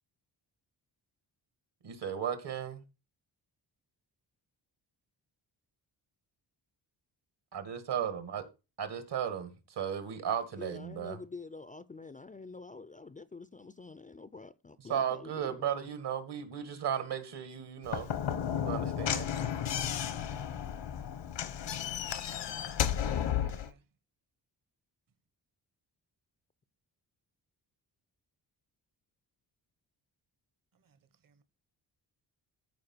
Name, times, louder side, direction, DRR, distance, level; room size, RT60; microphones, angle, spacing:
voice 1, 1.8-2.8 7.5-8.5 8.8-11.2 14.8-18.1 18.5-19.3, right 8 dB, 70° right, 2.1 m, -35 dB
voice 2, 10.6-15.8, left 3 dB, 20° left, 0.4 m, -47 dB
Slam / Knock, 17.8-23.7, left 9 dB, 80° left, 1.0 m, -33 dB
voice 3, 23.0-23.8 30.8-31.0 31.2-31.4, right 6 dB, 50° right, 1.1 m, -63 dB
13.5 x 4.8 x 4.4 m
wide cardioid pair, 120°, 42 cm